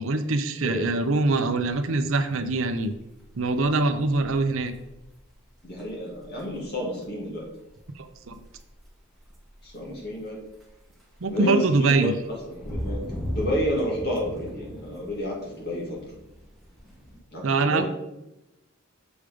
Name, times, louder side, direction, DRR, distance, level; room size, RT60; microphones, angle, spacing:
voice 1, 0.0-2.9 3.4-4.7 8.0-8.3 11.2-12.1 17.4-17.9, right 3 dB, 60° right, 9 dB, 0.6 m, -23 dB
sound 1, 0.8-17.2, equal, ahead, 1.4 m, -40 dB
voice 2, 5.6-7.5 9.6-10.4 11.3-13.0 13.3-16.0 17.3-17.9, equal, 45° left, -3 dB, 2.4 m, -30 dB
7.1 x 5.0 x 5.1 m, 0.91 s
head